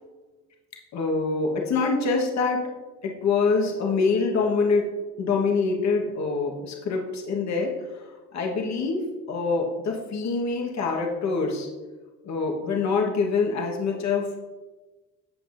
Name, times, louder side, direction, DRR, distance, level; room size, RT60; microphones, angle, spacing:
voice 1, 0.9-2.6 3.0-4.9 5.2-8.0 8.3-11.7 12.2-14.4, left 4 dB, 65° left, 0 dB, 1.3 m, -25 dB
16.5 x 5.5 x 2.6 m, 1.3 s
cardioid pair, 90°, 30 cm